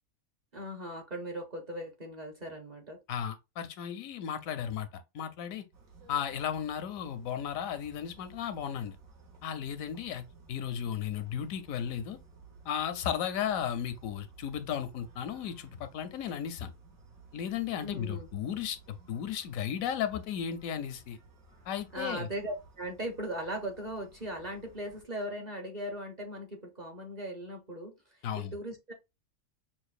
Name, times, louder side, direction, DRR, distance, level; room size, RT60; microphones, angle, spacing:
voice 1, 0.5-3.0 17.8-18.3 21.9-27.9 28.3-28.9, right 1 dB, 40° right, 0.7 m, -38 dB
voice 2, 3.1-4.9 5.1-5.6 6.1-9.0 9.4-10.2 10.5-12.2 12.7-16.7 17.3-21.2 21.7-22.3 28.2-28.5, left 9 dB, 85° left, 1.0 m, -35 dB
sound 1, 5.7-25.0, right 3 dB, 90° right, 1.6 m, -56 dB
5.9 x 2.2 x 2.4 m
omnidirectional pair, 1.4 m